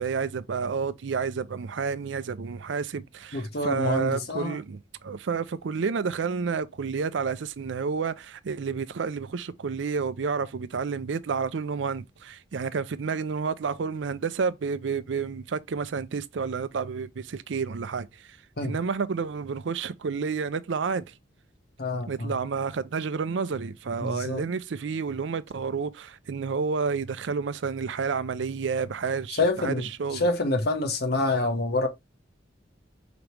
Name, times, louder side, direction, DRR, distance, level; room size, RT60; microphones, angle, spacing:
voice 1, 0.0-18.4 18.6-21.1 22.1-30.3, right 5 dB, 75° right, 0.5 m, -30 dB
voice 2, 3.3-4.6 18.6-18.8 21.8-22.3 24.0-24.4 29.4-31.9, left 2 dB, 55° left, 1.0 m, -27 dB
5.0 x 3.0 x 3.3 m
head